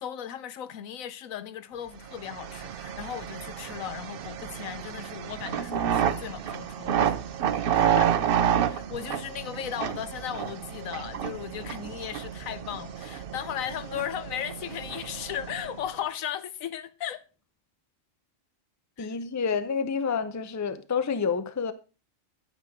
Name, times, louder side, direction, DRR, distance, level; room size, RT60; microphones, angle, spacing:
voice 1, 0.0-7.1 7.4-8.0 8.7-17.2 19.0-19.2, left 10 dB, 85° left, 1.1 m, -36 dB
sound 1, 2.1-15.9, right 9 dB, 60° right, 0.6 m, -30 dB
voice 2, 19.0-21.7, left 6 dB, 20° left, 0.4 m, -28 dB
9.2 x 9.1 x 3.6 m
omnidirectional pair, 1.4 m